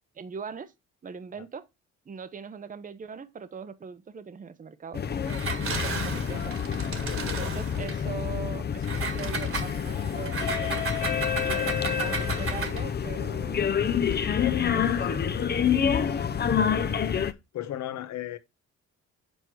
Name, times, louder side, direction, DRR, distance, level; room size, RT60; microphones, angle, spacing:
voice 1, 0.1-0.7 1.0-1.7 2.1-5.0 5.8-6.5 7.2-10.9 11.4-14.0 14.6-15.3, right 6 dB, 25° right, 0.7 m, -41 dB
sound 1, 4.9-17.3, left 8 dB, 35° left, 0.7 m, -28 dB
Engine, 5.2-8.0 8.8-12.9, right 4 dB, 45° right, 1.6 m, -34 dB
voice 2, 5.8-6.1 7.1-7.5 11.5-11.7 14.3-14.9 15.8-16.1 16.4-16.7 17.5-18.4, left 11 dB, 65° left, 1.0 m, -37 dB
8.0 x 4.5 x 4.6 m
cardioid pair, 90°, 30 cm